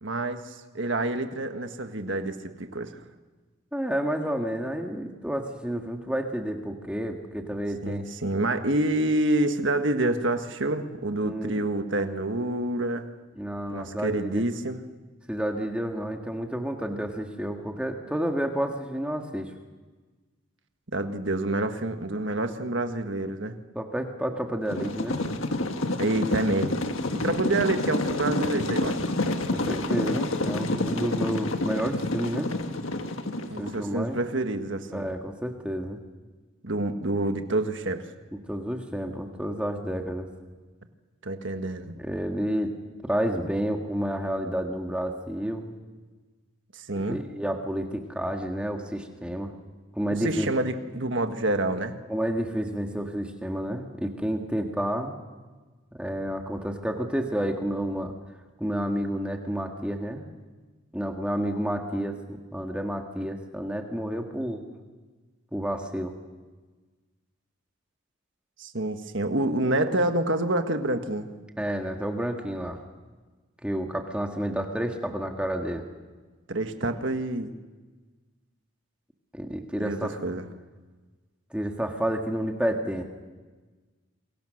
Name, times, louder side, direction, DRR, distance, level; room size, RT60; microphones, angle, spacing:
voice 1, 0.0-3.0 7.8-13.1 13.7-14.8 20.9-23.6 26.0-26.8 27.1-29.1 33.5-35.1 36.6-38.1 41.2-42.0 46.7-47.2 50.2-52.0 68.6-71.3 76.5-77.5 79.8-80.4, right 2 dB, 60° right, 7 dB, 1.6 m, -28 dB
voice 2, 3.7-8.0 11.2-11.6 13.4-14.4 15.3-19.5 23.8-25.2 29.5-32.5 33.6-34.2 34.9-36.0 38.5-40.3 42.0-42.7 43.0-45.7 47.0-49.5 49.9-50.5 52.1-55.1 55.9-58.1 58.6-60.3 60.9-62.1 62.5-64.6 65.5-66.1 71.6-72.8 73.6-75.8 79.3-80.1 81.5-83.0, equal, 5° right, 3 dB, 1.7 m, -30 dB
sound 1, 24.7-33.8, left 2 dB, 70° left, 1.6 m, -28 dB
28.5 x 23.0 x 6.5 m, 1.3 s
head